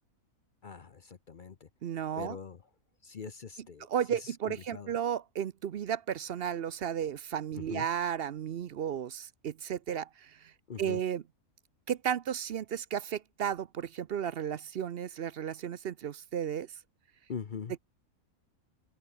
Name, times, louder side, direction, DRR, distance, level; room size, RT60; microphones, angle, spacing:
voice 1, 0.6-1.7 2.2-2.6 3.0-3.9 4.2-4.9 7.6-7.9 10.7-11.0 17.3-17.7, left 6 dB, 45° left, 0.8 m, -42 dB
voice 2, 1.8-2.4 3.8-10.4 10.8-11.2 11.9-16.7, right 9 dB, 55° right, 0.7 m, -34 dB
open air
omnidirectional pair, 1.5 m